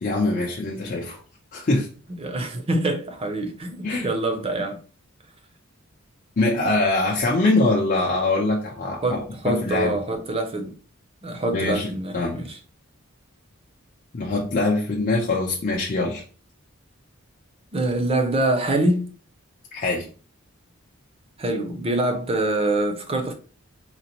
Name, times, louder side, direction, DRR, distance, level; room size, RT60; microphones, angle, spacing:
voice 1, 0.0-1.2 1.5-1.9 3.8-4.1 6.4-9.2 9.4-10.0 11.5-12.4 14.1-16.2 19.7-20.1, left 2 dB, 40° left, 0.6 m, -23 dB
voice 2, 2.2-4.8 9.0-10.7 11.2-12.6 17.7-19.1 21.4-23.3, right 2 dB, 30° right, 0.5 m, -25 dB
3.8 x 2.0 x 2.8 m
head